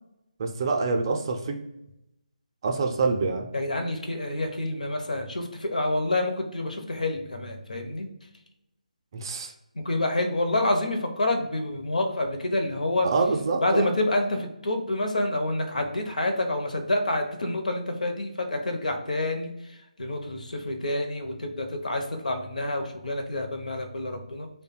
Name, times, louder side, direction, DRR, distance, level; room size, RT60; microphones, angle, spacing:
voice 1, 0.4-1.6 2.6-3.5 9.1-9.5 13.0-13.9, right 3 dB, 35° right, 4 dB, 0.4 m, -26 dB
voice 2, 3.5-8.1 9.8-13.1 13.6-19.5 20.0-24.5, left 1 dB, 70° left, 5 dB, 0.7 m, -28 dB
3.3 x 2.2 x 4.2 m, 0.87 s
figure-of-eight pair, 150°, 4 cm